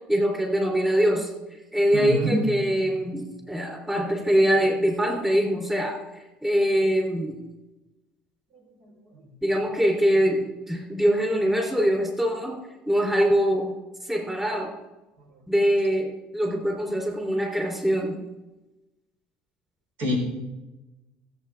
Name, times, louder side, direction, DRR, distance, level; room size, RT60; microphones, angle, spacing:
voice 1, 0.1-1.3 1.7-7.4 9.4-12.6 12.9-13.8 14.0-14.7 15.5-18.2, equal, 10° right, 1 dB, 3.6 m, -23 dB
voice 2, 1.9-3.0 8.5-8.6 9.1-9.4 15.2-15.4 20.0-20.2, equal, 70° right, 0 dB, 4.4 m, -28 dB
20.0 x 7.7 x 3.6 m, 1.0 s
supercardioid pair, 80°, 4 cm